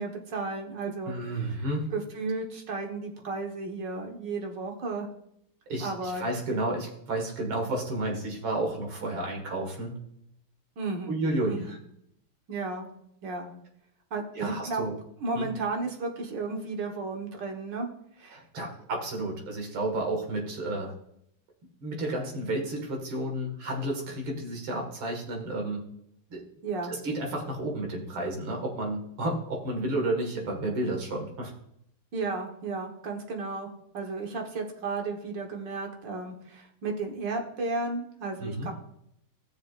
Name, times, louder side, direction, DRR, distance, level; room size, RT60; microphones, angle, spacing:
voice 1, 0.0-1.6 1.9-5.1 5.8-6.3 10.8-11.2 11.5-11.7 12.5-12.9 13.2-13.5 14.1-14.8 15.2-17.9 18.2-18.4 26.6-26.9 32.1-33.7 33.9-38.7, right 3 dB, 60° right, 2 dB, 1.9 m, -33 dB
voice 2, 1.1-1.9 5.7-9.9 11.1-11.8 14.3-15.0 15.4-15.5 18.3-20.9 21.8-25.8 26.3-26.4 26.9-31.5 38.4-38.7, right 1 dB, 85° right, 1 dB, 2.6 m, -31 dB
16.5 x 7.0 x 2.5 m, 0.76 s
omnidirectional pair, 2.2 m